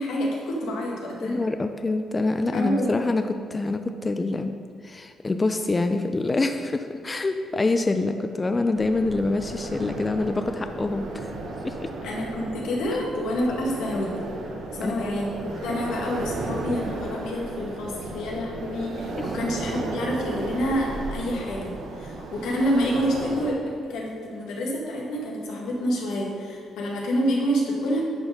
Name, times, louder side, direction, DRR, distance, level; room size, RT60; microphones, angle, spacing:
voice 1, 0.0-1.4 2.5-3.0 12.0-14.2 14.7-23.6 23.8-28.0, equal, 85° left, -2 dB, 1.7 m, -28 dB
voice 2, 1.2-4.5 4.8-11.3 11.6-11.9 14.8-15.1 19.2-19.3, left 2 dB, 25° left, 7 dB, 0.4 m, -26 dB
sound 1, 8.7-23.5, right 2 dB, 85° right, 1.2 m, -34 dB
10.5 x 4.1 x 5.2 m, 2.3 s
cardioid pair, 90°, 0 cm